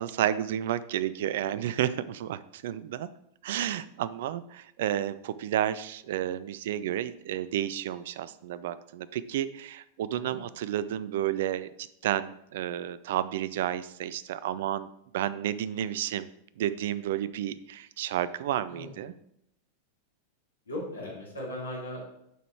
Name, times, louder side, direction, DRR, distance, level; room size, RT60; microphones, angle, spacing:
voice 1, 0.0-3.1 3.4-11.7 12.0-14.9 15.1-16.3 16.6-19.1, right 11 dB, 55° right, 16 dB, 0.3 m, -31 dB
voice 2, 18.7-19.0 20.7-22.1, left 1 dB, 75° left, -4 dB, 2.7 m, -38 dB
7.8 x 4.9 x 4.5 m, 0.78 s
figure-of-eight pair, 90°, 0 cm